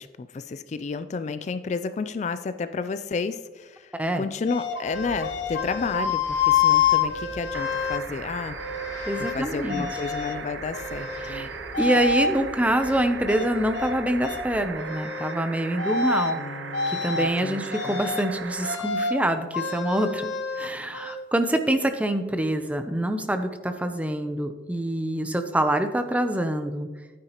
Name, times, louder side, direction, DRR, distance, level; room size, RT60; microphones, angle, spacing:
voice 1, 0.0-8.6 9.2-11.5 16.4-18.0, left 4 dB, 40° left, 12 dB, 0.3 m, -32 dB
voice 2, 3.9-4.2 9.1-9.9 11.2-11.5 11.8-16.4 16.9-26.9, right 1 dB, 10° right, 8 dB, 0.6 m, -26 dB
sound 1, 4.5-8.0 8.6-9.4 9.7-10.4 10.7-11.4 11.7-12.3 12.8-14.0 14.2-14.4 14.8-15.4 15.8-16.4 16.7-17.3 17.7-18.3 18.6-19.2 19.5-21.2, left 6 dB, 75° left, 0.9 m, -27 dB
sound 2, 4.9-14.7, left 1 dB, 15° left, 1.2 m, -45 dB
sound 3, 7.5-18.8 20.2-20.3, right 5 dB, 85° right, 0.7 m, -38 dB
11.0 x 9.5 x 3.0 m, 1.4 s
head